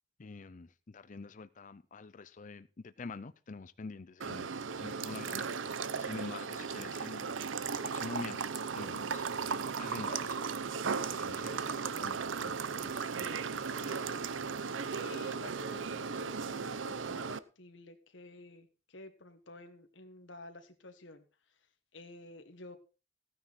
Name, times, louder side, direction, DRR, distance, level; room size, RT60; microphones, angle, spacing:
voice 1, 0.2-4.5 4.8-7.4 7.8-10.4 10.9-14.0, left 4 dB, 40° left, 0.5 m, -47 dB
sound 1, 4.2-17.4, right 5 dB, 90° right, 0.7 m, -36 dB
voice 2, 14.9-21.2 21.9-22.8, left 2 dB, 75° left, 1.6 m, -51 dB
15.0 x 9.6 x 4.2 m
head